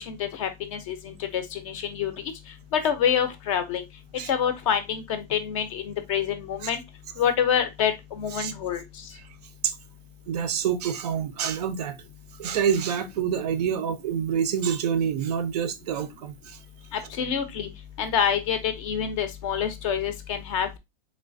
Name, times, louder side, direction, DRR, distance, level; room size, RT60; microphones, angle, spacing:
voice 1, 0.0-3.8 4.1-6.8 7.2-9.1 16.9-17.7 18.0-20.8, left 8 dB, 35° left, 0.5 m, -27 dB
voice 2, 10.3-12.0 12.4-16.6, right 8 dB, 45° right, 0.4 m, -27 dB
3.2 x 3.1 x 2.5 m
hypercardioid pair, 155°, 29 cm